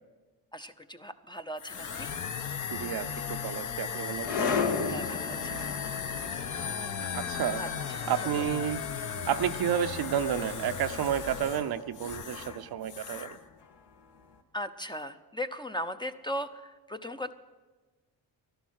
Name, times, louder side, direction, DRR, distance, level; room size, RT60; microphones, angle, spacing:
voice 1, 0.5-2.1 4.9-5.7 7.6-7.7 8.0-8.1 14.5-16.5 16.9-17.3, equal, 10° left, 8 dB, 0.6 m, -37 dB
sound 1, 1.6-12.6 12.8-13.4, left 7 dB, 45° left, 0.9 m, -36 dB
voice 2, 2.7-4.5 7.1-7.7 8.1-8.9 9.3-13.4, right 9 dB, 55° right, 11 dB, 0.7 m, -31 dB
sound 2, 3.1-14.2, left 5 dB, 65° left, 1.6 m, -37 dB
12.5 x 11.5 x 6.4 m, 1.3 s
supercardioid pair, 65°, 44 cm